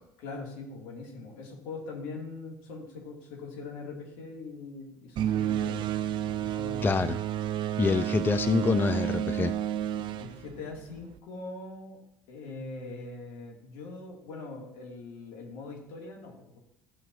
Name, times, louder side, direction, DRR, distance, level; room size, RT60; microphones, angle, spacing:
voice 1, 0.2-5.8 6.4-7.0 10.2-12.0 12.3-16.6, left 3 dB, 70° left, -1 dB, 2.5 m, -42 dB
sound 1, 5.2-11.2, right 11 dB, 50° right, 0.5 m, -31 dB
voice 2, 6.8-7.2 7.8-9.5, left 4 dB, 20° left, 13 dB, 0.4 m, -26 dB
13.5 x 7.6 x 2.7 m, 0.82 s
hypercardioid pair, 65°, 10 cm